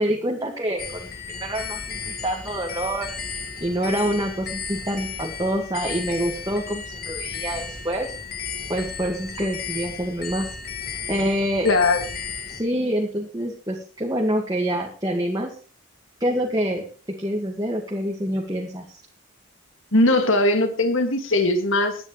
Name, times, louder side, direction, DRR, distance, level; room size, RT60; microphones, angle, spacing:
voice 1, 0.0-8.1 8.7-10.5 11.1-11.7 12.5-15.5 16.2-16.8 17.2-19.0, equal, 20° right, 0 dB, 1.9 m, -26 dB
sound 1, 0.8-12.6, left 6 dB, 45° left, 2.0 m, -34 dB
voice 2, 11.6-12.0 19.9-22.0, left 2 dB, 60° left, 6 dB, 2.2 m, -19 dB
21.0 x 9.8 x 3.2 m, 0.39 s
head